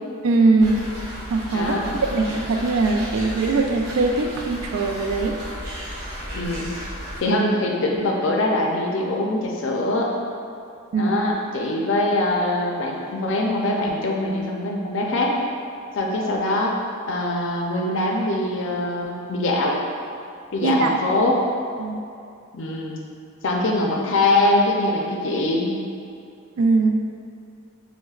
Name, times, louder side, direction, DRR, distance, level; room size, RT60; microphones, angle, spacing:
voice 1, 0.2-0.9 1.3-1.8 2.1-5.4 10.9-11.2 20.6-21.0 21.8-22.0 26.6-27.0, right 3 dB, 85° right, 3 dB, 0.3 m, -21 dB
sound 1, 0.6-7.2, equal, 50° right, 1.4 m, -34 dB
voice 2, 1.5-1.9 6.3-6.7 7.2-10.1 11.0-15.4 15.9-16.8 17.1-19.8 20.5-21.4 22.5-23.0 23.4-25.7, left 2 dB, 65° left, -1 dB, 0.5 m, -23 dB
6.1 x 2.1 x 2.3 m, 2.4 s
head